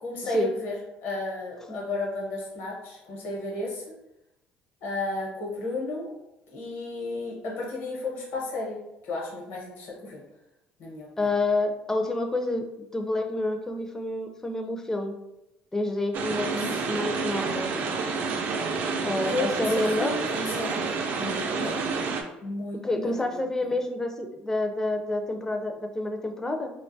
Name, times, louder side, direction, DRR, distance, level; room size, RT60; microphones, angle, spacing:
voice 1, 0.0-3.8 4.8-6.1 6.5-8.8 9.0-10.2 10.8-11.3 16.6-16.7 19.2-20.9 21.2-21.8 22.4-23.7, left 2 dB, 70° left, -2 dB, 0.9 m, -33 dB
voice 2, 11.2-15.1 15.7-17.7 19.0-20.1 22.8-26.7, left 2 dB, 15° left, 4 dB, 0.4 m, -28 dB
sound 1, 16.1-22.2, right 4 dB, 55° right, 0.4 m, -29 dB
2.5 x 2.2 x 2.6 m, 0.89 s
cardioid pair, 100°, 4 cm